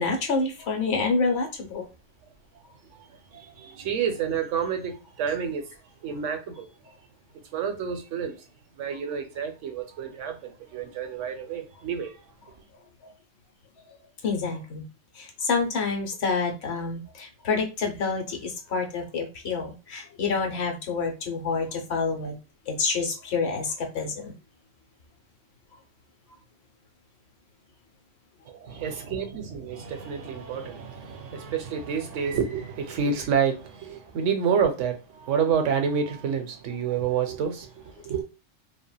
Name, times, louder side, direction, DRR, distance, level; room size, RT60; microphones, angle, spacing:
voice 1, 0.0-1.9 14.2-14.8 15.2-22.4 22.7-24.3, left 4 dB, 65° left, 1.0 m, -28 dB
voice 2, 2.8-6.7 7.5-8.5 8.8-12.2 28.5-38.2, right 7 dB, 85° right, 1.0 m, -29 dB
3.3 x 2.1 x 2.3 m
omnidirectional pair, 1.2 m